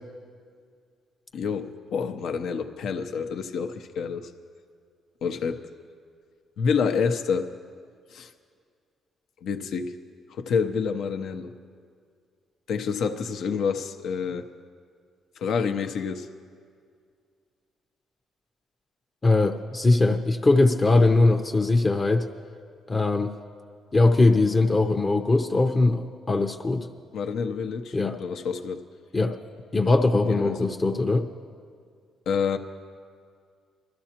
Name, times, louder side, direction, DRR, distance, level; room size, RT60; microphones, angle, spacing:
voice 1, 1.3-4.3 5.2-5.6 6.6-7.5 8.1-8.3 9.4-9.9 10.3-11.5 12.7-14.5 15.4-16.3 27.1-28.8 30.2-30.7 32.3-32.6, left 6 dB, 75° left, 6 dB, 0.7 m, -28 dB
voice 2, 19.2-22.3 22.9-23.3 23.9-26.9 27.9-28.2 29.1-29.4 29.7-31.3, left 2 dB, 25° left, 5 dB, 0.7 m, -21 dB
22.0 x 13.0 x 2.9 m, 2.1 s
cardioid pair, 90°, 0 cm